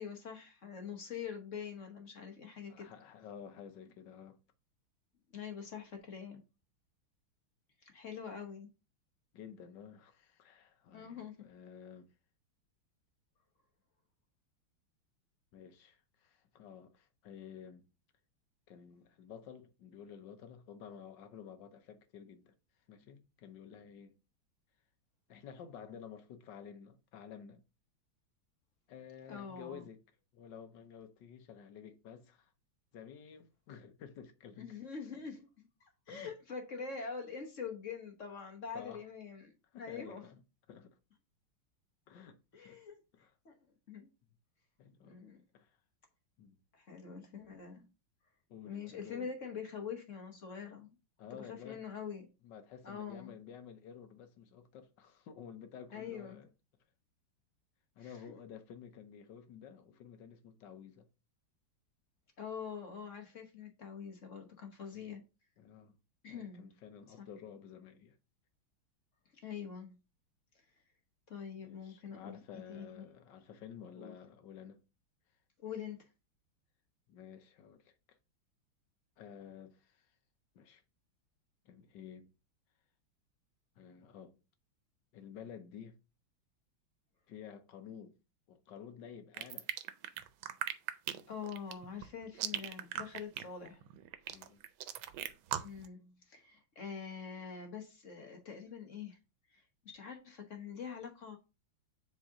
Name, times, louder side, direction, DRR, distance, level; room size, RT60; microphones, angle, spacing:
voice 1, 0.0-2.9 5.3-6.4 7.8-8.7 10.9-11.5 29.3-29.9 34.6-35.7 36.1-39.5 39.8-40.3 42.5-43.0 43.4-43.5 43.9-44.1 45.0-45.4 46.7-47.9 48.6-50.9 51.4-52.3 52.8-53.3 55.9-56.4 58.0-58.2 62.4-65.2 66.2-66.7 67.2-67.3 69.4-70.0 71.3-72.4 72.7-73.0 73.9-74.1 75.6-76.1 91.3-93.8 95.5-99.2 99.5-101.4, left 6 dB, 45° left, 1.2 m, -45 dB
voice 2, 2.7-4.4 9.3-12.1 15.5-17.9 18.7-22.5 22.9-24.2 25.3-27.6 28.9-30.0 30.3-32.5 32.9-34.7 36.1-36.3 38.7-39.0 39.7-40.4 40.7-41.0 42.1-42.8 43.1-43.3 44.8-45.2 45.5-45.8 46.4-46.6 48.5-49.3 51.2-51.8 52.4-56.5 58.0-61.1 64.9-65.2 65.6-65.9 66.3-68.2 71.6-74.8 77.1-78.2 79.2-80.1 80.5-80.8 81.6-82.3 83.8-84.4 85.1-86.0 87.3-88.2 88.5-89.7 94.3-94.6, left 8 dB, 65° left, 1.4 m, -52 dB
sound 1, 89.3-95.9, right 11 dB, 90° right, 1.4 m, -38 dB
7.4 x 3.7 x 3.7 m
omnidirectional pair, 2.2 m